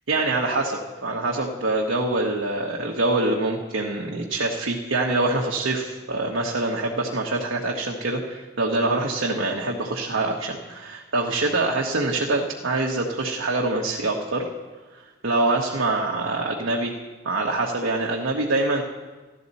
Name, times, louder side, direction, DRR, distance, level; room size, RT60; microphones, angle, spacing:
voice 1, 0.1-14.5 15.2-16.9 17.2-18.8, right 2 dB, 80° right, -1 dB, 1.2 m, -25 dB
14.5 x 12.0 x 4.1 m, 1.3 s
head